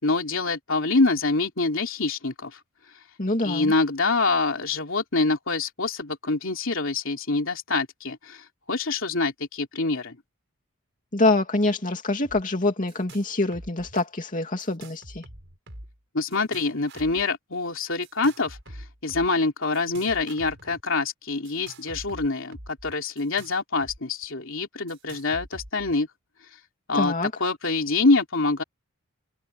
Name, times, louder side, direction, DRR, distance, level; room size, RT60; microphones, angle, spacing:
voice 1, 0.0-2.6 3.4-10.2 16.1-18.6 19.0-26.1 26.9-27.1 27.4-28.6, left 3 dB, 60° left, 3.5 m, -25 dB
voice 2, 3.2-3.7 11.1-15.2 26.9-27.3, left 2 dB, 35° left, 2.8 m, -25 dB
sound 1, 12.2-12.4 12.7-13.3 13.5-14.1 14.6-16.0 16.3-17.2 18.0-19.3 19.7-20.8 21.4-24.0 24.2-24.3 24.9-25.9, right 1 dB, 55° right, 6.0 m, -45 dB
head